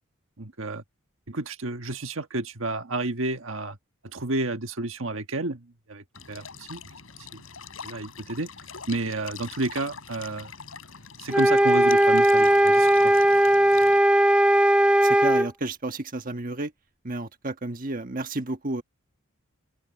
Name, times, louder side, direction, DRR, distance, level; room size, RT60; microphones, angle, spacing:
voice 1, 0.4-0.8 1.3-3.8 4.1-6.8 7.2-7.4 7.8-8.5 8.9-10.5 11.2-13.1, right 2 dB, 75° right, 1.4 m, -31 dB
sound 1, 6.1-14.0, left 6 dB, 85° left, 4.6 m, -43 dB
sound 2, 11.3-15.5, right 1 dB, 5° right, 0.4 m, -18 dB
voice 2, 15.0-16.7 17.0-18.8, right 2 dB, 40° right, 1.4 m, -31 dB
open air
head